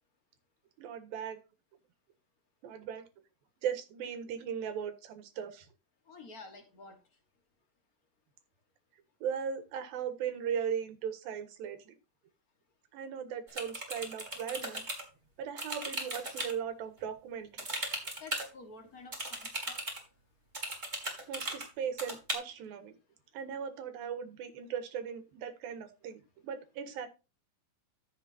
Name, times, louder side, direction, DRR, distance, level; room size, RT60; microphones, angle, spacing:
voice 1, 0.8-1.4 2.6-3.0 3.6-5.7 9.2-11.9 12.9-14.8 15.4-17.9 21.3-22.9 23.3-27.1, right 7 dB, 75° right, 8 dB, 3.2 m, -38 dB
voice 2, 6.1-6.9 18.2-19.8, left 3 dB, 90° left, 5 dB, 0.8 m, -50 dB
sound 1, 13.5-15.0 15.6-16.5 17.6-18.5 19.1-20.0 20.5-21.7 22.0-22.3, right 1 dB, 15° right, 3.0 m, -37 dB
15.0 x 7.0 x 2.7 m, 0.30 s
omnidirectional pair, 4.3 m